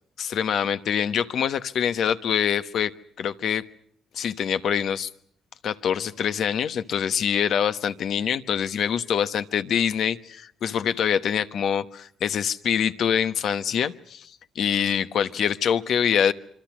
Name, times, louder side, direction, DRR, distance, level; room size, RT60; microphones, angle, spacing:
voice 1, 0.2-2.9 3.2-3.6 4.1-5.1 5.6-16.3, left 8 dB, 65° left, 11 dB, 1.2 m, -25 dB
26.0 x 24.0 x 6.2 m, 0.63 s
cardioid pair, 90°, 0 cm